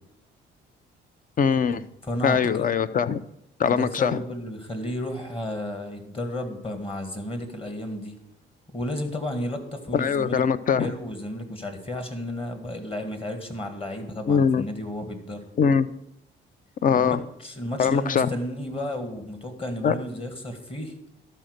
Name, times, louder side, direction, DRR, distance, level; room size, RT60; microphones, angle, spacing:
voice 1, 1.4-1.8 2.2-3.2 3.6-4.2 9.9-10.9 14.3-14.6 15.6-15.9 16.8-17.2 17.8-18.3 19.8-19.9, left 6 dB, 45° left, 14 dB, 0.5 m, -22 dB
voice 2, 2.1-2.7 3.6-8.1 8.7-10.4 10.8-15.5 16.9-20.9, left 1 dB, 30° left, 6 dB, 1.8 m, -33 dB
12.0 x 4.3 x 6.5 m, 0.81 s
cardioid pair, 90°, 20 cm